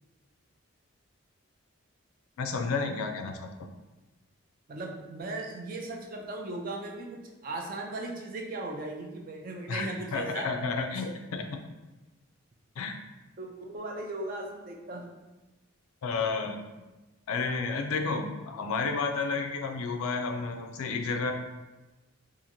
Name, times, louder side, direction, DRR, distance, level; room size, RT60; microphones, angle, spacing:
voice 1, 2.4-3.5 9.7-9.9 10.1-11.6 12.8-12.9 16.0-16.6 17.3-21.3, left 4 dB, 85° left, 5 dB, 0.4 m, -31 dB
voice 2, 4.7-10.5 11.0-11.1 13.4-15.1 18.0-18.2, right 2 dB, 40° right, 1 dB, 0.4 m, -37 dB
2.8 x 2.5 x 2.6 m, 1.1 s
head